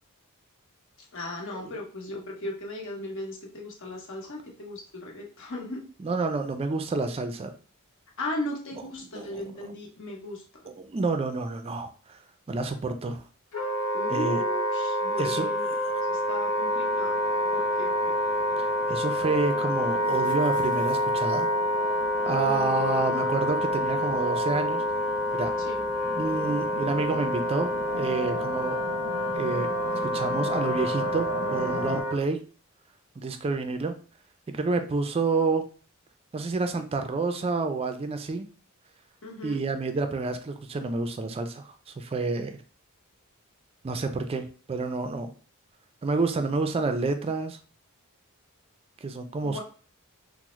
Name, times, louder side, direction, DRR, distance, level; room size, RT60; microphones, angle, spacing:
voice 1, 1.0-5.8 8.2-10.4 13.9-15.7 16.1-17.2 17.5-18.2 22.4-22.7 25.6-25.8 39.2-39.6 49.4-49.6, left 1 dB, 60° left, 0 dB, 0.9 m, -36 dB
voice 2, 6.0-7.5 9.1-9.7 10.6-12.2 12.5-13.2 14.1-14.4 15.2-15.9 18.6-21.5 22.2-24.8 25.3-25.5 26.1-28.8 29.3-32.4 33.2-33.9 34.5-35.6 36.3-38.5 39.4-42.6 43.8-45.3 46.0-47.6 49.0-49.6, right 3 dB, 25° right, 7 dB, 0.3 m, -29 dB
Wind instrument woodwind instrument, 13.5-32.2, left 1 dB, 80° left, 0.6 m, -27 dB
sound 1, 15.8-32.0, left 1 dB, 20° left, 0.9 m, -39 dB
3.5 x 2.0 x 3.0 m, 0.38 s
head